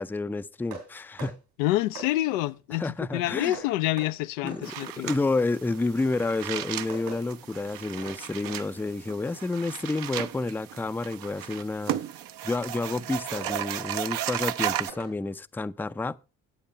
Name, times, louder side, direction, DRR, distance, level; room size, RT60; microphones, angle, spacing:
voice 1, 0.0-1.4 2.7-3.6 4.4-12.0 12.4-16.2, left 3 dB, 5° left, 0.4 m, -30 dB
sound 1, 0.7-0.9 1.2-1.3 1.9-2.1 3.5-3.7 4.0-4.1 4.5-4.6 6.0-6.1 6.5-7.2 8.0-8.2 8.4-8.6 10.1-10.3 11.9-12.0 13.3-13.7 14.7-15.1, right 4 dB, 75° right, 4.0 m, -40 dB
voice 2, 1.6-2.9 3.1-5.1, left 16 dB, 80° left, 0.5 m, -27 dB
sound 2, 4.6-14.9, right 12 dB, 60° right, 0.7 m, -35 dB
8.6 x 7.8 x 5.5 m
hypercardioid pair, 45°, 39 cm